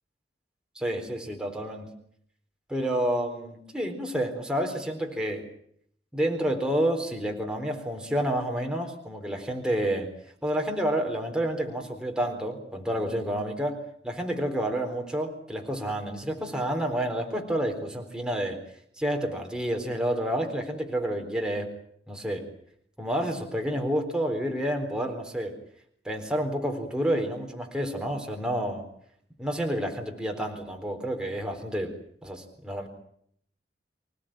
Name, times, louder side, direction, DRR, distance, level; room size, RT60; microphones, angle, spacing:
voice 1, 0.8-1.9 2.7-5.5 6.1-10.1 10.4-18.6 19.0-21.7 22.1-22.5 23.0-25.6 26.0-28.9 29.4-32.9, right 1 dB, 5° right, 2 dB, 4.1 m, -29 dB
27.0 x 18.0 x 9.0 m, 0.68 s
head